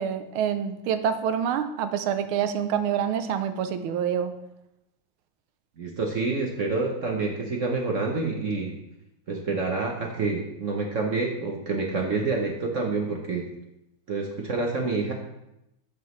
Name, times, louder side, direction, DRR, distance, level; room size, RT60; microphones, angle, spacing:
voice 1, 0.0-4.3, right 8 dB, 85° right, 10 dB, 1.5 m, -27 dB
voice 2, 5.8-8.7 9.3-13.5 14.1-15.1, right 3 dB, 50° right, 0 dB, 0.9 m, -28 dB
13.0 x 5.0 x 3.2 m, 0.86 s
omnidirectional pair, 2.3 m